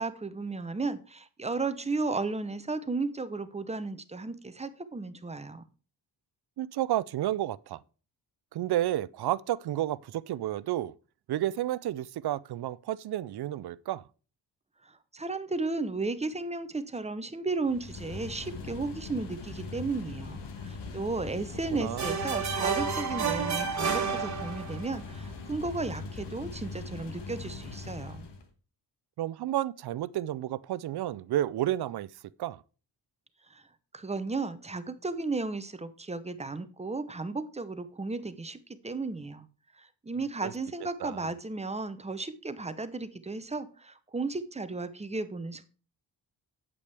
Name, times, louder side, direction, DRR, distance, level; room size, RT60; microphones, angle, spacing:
voice 1, 0.0-5.6 14.8-28.3 33.5-33.6 33.9-38.6 38.8-39.5 39.8-45.7, right 3 dB, 15° right, 0.7 m, -34 dB
voice 2, 6.6-7.8 8.5-10.9 11.3-14.0 21.7-22.2 29.2-32.1 32.4-32.6 40.4-40.5 41.0-41.3, right 13 dB, 65° right, 0.5 m, -31 dB
sound 1, 17.6-28.5, left 4 dB, 75° left, 1.7 m, -41 dB
sound 2, 22.0-24.9, right 6 dB, 40° right, 1.4 m, -30 dB
8.5 x 8.2 x 3.4 m
wide cardioid pair, 135°, 42 cm